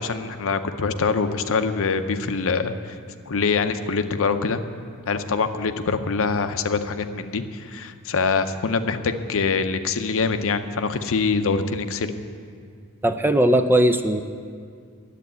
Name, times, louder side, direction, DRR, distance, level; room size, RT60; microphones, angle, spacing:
voice 1, 0.0-3.0 3.3-4.6 5.1-12.1, left 4 dB, 65° left, 9 dB, 0.7 m, -24 dB
voice 2, 13.0-14.2, right 1 dB, 10° right, 9 dB, 0.4 m, -18 dB
11.0 x 8.3 x 9.3 m, 2.1 s
head